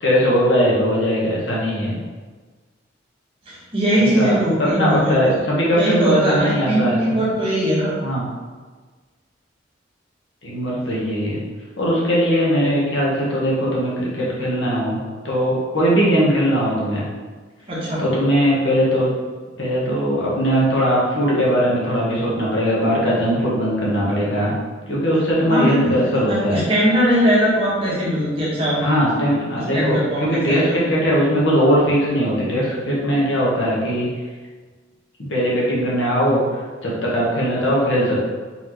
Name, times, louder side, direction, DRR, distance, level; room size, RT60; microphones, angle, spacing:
voice 1, 0.0-2.0 4.2-4.3 4.6-7.2 8.0-8.2 10.4-11.4 11.8-17.0 18.0-19.1 19.6-24.5 24.9-26.6 28.8-29.9 30.2-34.1 35.3-36.4 36.8-38.2, equal, 80° left, -5 dB, 1.3 m, -19 dB
voice 2, 3.5-5.3 5.7-7.9 17.7-18.0 25.5-26.0 26.3-29.0 29.7-30.7, equal, 30° right, -8 dB, 1.4 m, -20 dB
4.2 x 3.7 x 3.1 m, 1.4 s
head